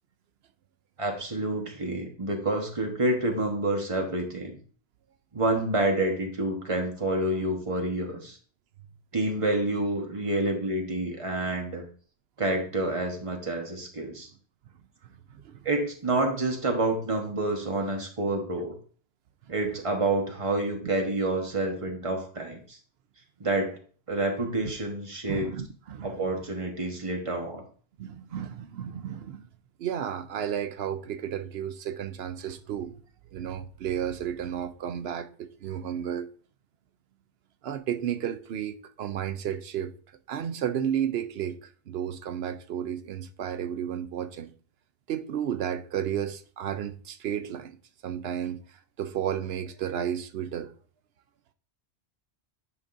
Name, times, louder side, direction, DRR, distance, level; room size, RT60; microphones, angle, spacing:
voice 1, 1.0-4.6 5.3-8.4 9.1-11.8 12.4-14.3 15.6-18.7 19.5-22.8 23.4-23.7 24.1-25.5 26.0-27.6, right 2 dB, 30° right, 1.3 m, -28 dB
voice 2, 15.0-15.7 25.3-26.2 28.0-29.5 29.8-33.0 33.3-36.3 37.6-39.9 40.3-44.5 45.1-47.8 48.0-50.7, right 9 dB, 70° right, 0.8 m, -33 dB
9.8 x 5.1 x 2.6 m
omnidirectional pair, 1.1 m